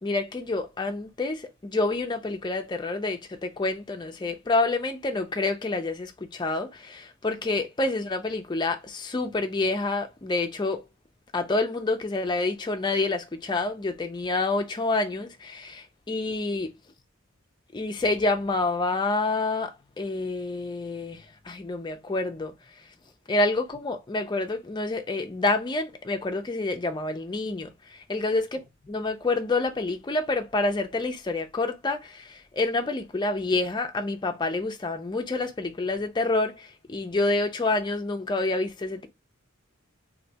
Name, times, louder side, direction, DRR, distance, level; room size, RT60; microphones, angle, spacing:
voice 1, 0.0-10.9 11.3-16.7 17.7-22.5 23.3-28.4 28.9-39.1, left 2 dB, 20° left, 0.4 m, -28 dB
3.2 x 2.6 x 2.8 m
head